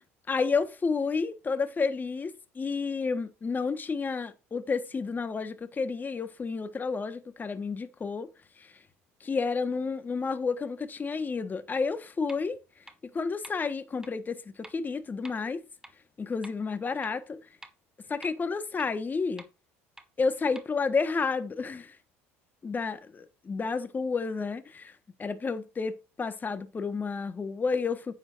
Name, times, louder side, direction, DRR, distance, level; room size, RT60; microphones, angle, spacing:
voice 1, 0.3-8.3 8.6-8.7 9.2-12.6 13.1-15.6 16.2-17.4 18.1-19.4 20.2-22.0 22.6-23.0 23.4-24.9 25.2-28.1, left 4 dB, 25° left, 1.5 m, -30 dB
sound 1, 12.3-12.4 12.9-13.0 13.4-13.5 14.0-14.1 14.6-14.7 15.2-15.3 15.8-15.9 16.4-16.5 17.0-17.1 17.6-17.7 18.2-18.3 18.8-18.9 19.4-19.5 20.0-20.1 20.6-20.7, right 1 dB, 10° right, 1.7 m, -47 dB
9.4 x 9.2 x 2.6 m
hypercardioid pair, 70°, 7 cm